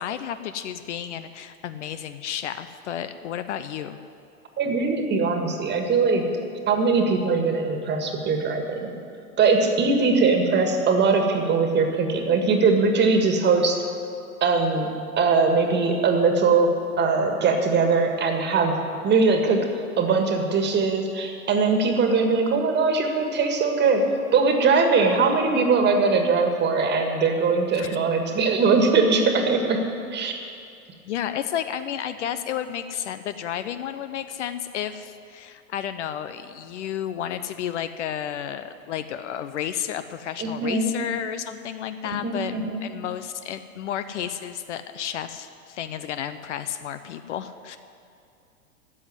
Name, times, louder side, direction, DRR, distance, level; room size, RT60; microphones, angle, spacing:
voice 1, 0.0-4.0 27.7-28.0 31.1-47.8, left 9 dB, 55° left, 11 dB, 0.7 m, -32 dB
voice 2, 4.6-6.2 6.7-8.9 9.4-13.8 14.4-14.9 15.2-16.7 17.0-18.8 19.0-19.7 20.0-24.0 24.3-29.8 30.1-30.3 40.4-40.9 42.2-42.8, right 4 dB, 25° right, 4 dB, 1.8 m, -21 dB
13.5 x 7.9 x 9.7 m, 2.5 s
figure-of-eight pair, 100°, 44 cm